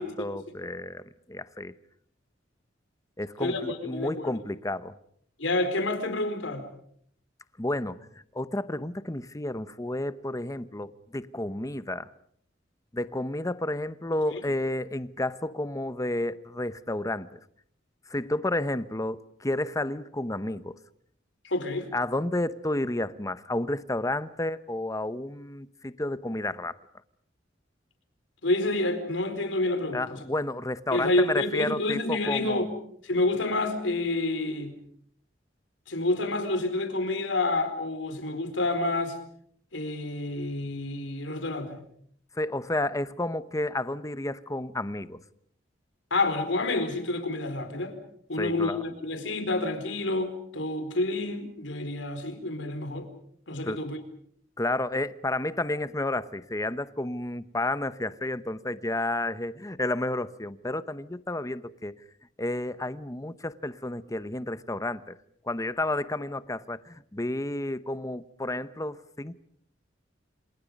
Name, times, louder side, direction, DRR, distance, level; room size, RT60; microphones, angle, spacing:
voice 1, 0.0-1.7 3.2-4.9 7.6-8.1 8.3-12.1 12.9-17.4 18.1-20.8 21.9-26.8 29.9-32.7 42.4-45.2 48.4-48.8 53.6-53.8 54.6-61.9 62.4-65.1 65.5-69.4, left 1 dB, 20° left, 0.9 m, -31 dB
voice 2, 3.4-4.4 5.4-6.7 14.3-14.4 21.4-21.9 28.4-30.2 30.9-32.7 33.0-34.8 35.9-39.2 39.7-41.9 46.1-48.0 48.3-53.1 53.5-54.0, left 2 dB, 80° left, 4.5 m, -28 dB
28.0 x 27.5 x 5.3 m
head